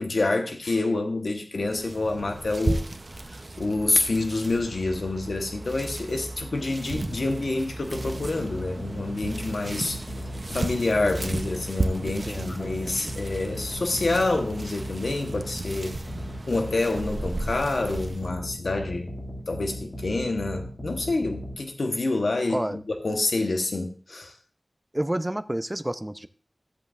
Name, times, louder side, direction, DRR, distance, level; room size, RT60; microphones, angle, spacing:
voice 1, 0.0-2.8 3.6-10.0 10.5-16.0 16.5-19.1 19.5-24.3, left 2 dB, 85° left, 4 dB, 1.0 m, -27 dB
sound 1, 1.7-18.3, right 2 dB, 55° right, 0.7 m, -34 dB
sound 2, 7.9-21.6, equal, 60° left, 2.8 m, -37 dB
voice 2, 12.0-13.1 22.5-22.8 24.9-26.3, right 1 dB, 20° right, 11 dB, 0.6 m, -30 dB
13.5 x 7.7 x 2.5 m, 0.38 s
wide cardioid pair, 50°, 0 cm